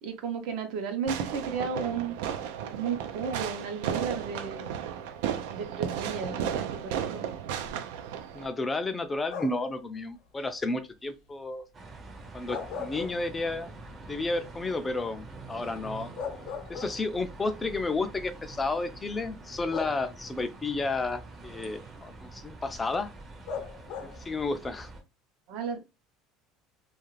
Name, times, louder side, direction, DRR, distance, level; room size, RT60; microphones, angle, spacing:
voice 1, 0.0-2.1 2.7-4.8 5.5-7.3 25.5-25.8, right 6 dB, 70° right, 0.8 m, -34 dB
Fireworks, 1.1-8.5, right 9 dB, 85° right, 0.4 m, -34 dB
voice 2, 8.3-11.7 12.3-13.7 14.1-16.1 16.7-23.1 24.0-24.9, left 3 dB, 15° left, 0.4 m, -32 dB
sound 1, 9.3-9.8 12.3-13.7 14.1-14.2 15.7-15.8 16.2-17.3 18.3-18.4 19.7-20.4 23.5-24.3, left 6 dB, 70° left, 0.6 m, -38 dB
sound 2, 11.7-25.0, right 3 dB, 25° right, 0.6 m, -46 dB
2.4 x 2.4 x 3.1 m
supercardioid pair, 130°, 0 cm